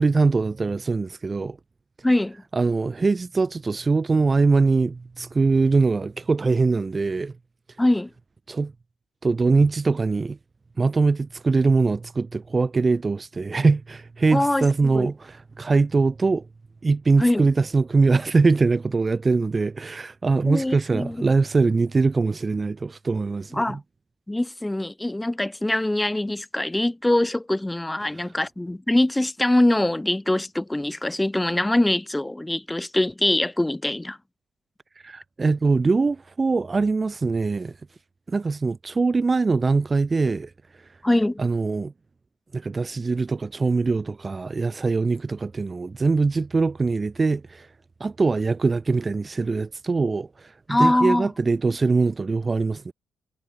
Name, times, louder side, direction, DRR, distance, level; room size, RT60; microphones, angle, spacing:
voice 1, 0.0-1.6 2.5-7.3 8.5-8.7 9.2-10.4 10.8-16.5 16.8-23.6 35.0-37.7 38.3-40.5 41.4-41.9 42.5-47.7 48.0-52.9, right 4 dB, 30° right, 3.9 m, -22 dB
voice 2, 2.0-2.4 7.8-8.1 14.3-15.1 17.2-17.4 20.5-21.2 23.5-23.8 24.3-34.2 41.0-41.4 50.7-51.3, left 1 dB, 10° left, 1.8 m, -23 dB
cardioid pair, 90°, 0 cm